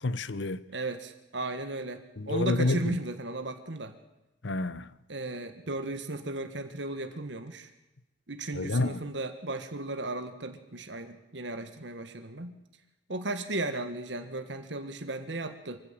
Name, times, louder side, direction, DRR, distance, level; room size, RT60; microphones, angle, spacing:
voice 1, 0.0-0.6 2.2-3.0 4.4-4.9 8.5-9.0, left 2 dB, 90° left, 0.9 m, -29 dB
voice 2, 0.7-3.9 5.1-7.7 8.3-12.6 13.1-15.8, right 2 dB, 80° right, 1.7 m, -35 dB
24.5 x 15.5 x 7.6 m
head